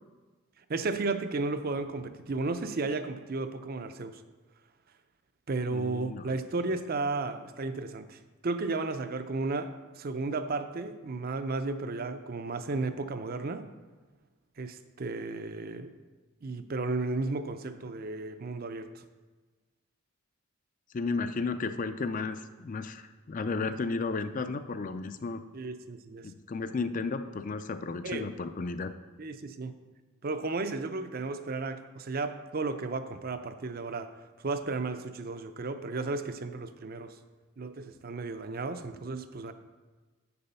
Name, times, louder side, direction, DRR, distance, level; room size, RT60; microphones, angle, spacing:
voice 1, 0.7-4.2 5.5-13.6 14.6-15.9 16.4-19.0 25.5-26.3 28.0-28.3 29.2-29.7 30.2-34.1 34.4-37.2 37.6-39.5, right 3 dB, 45° right, 9 dB, 0.5 m, -34 dB
voice 2, 5.7-6.3 20.9-25.4 26.2-28.9, left 4 dB, 40° left, 10 dB, 0.4 m, -33 dB
7.7 x 6.9 x 5.6 m, 1.3 s
head